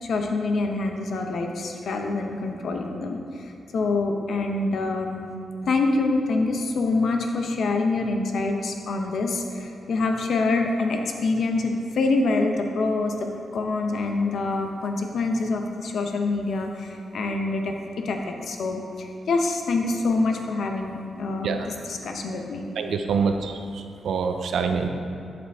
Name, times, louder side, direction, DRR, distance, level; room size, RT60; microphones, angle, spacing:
voice 1, 0.0-5.3 5.6-22.6, left 3 dB, 70° left, 3 dB, 0.8 m, -26 dB
voice 2, 22.8-24.9, right 5 dB, 80° right, 5 dB, 0.6 m, -26 dB
11.5 x 5.1 x 3.5 m, 2.6 s
cardioid pair, 85°, 0 cm